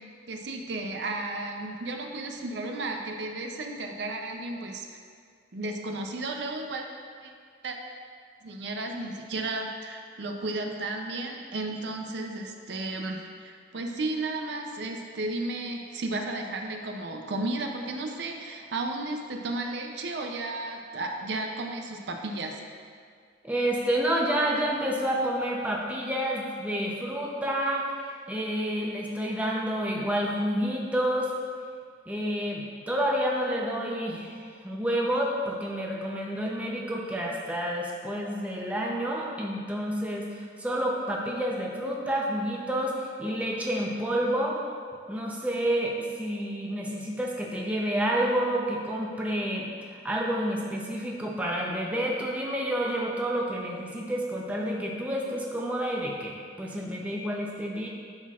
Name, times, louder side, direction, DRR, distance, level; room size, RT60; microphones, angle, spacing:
voice 1, 0.3-4.9 5.5-6.9 7.2-7.3 7.6-7.8 8.4-22.6, right 2 dB, 65° right, 3 dB, 0.5 m, -33 dB
voice 2, 23.4-31.3 32.1-44.6 45.1-57.9, equal, 10° right, -2 dB, 0.6 m, -29 dB
11.5 x 4.1 x 2.4 m, 2.1 s
head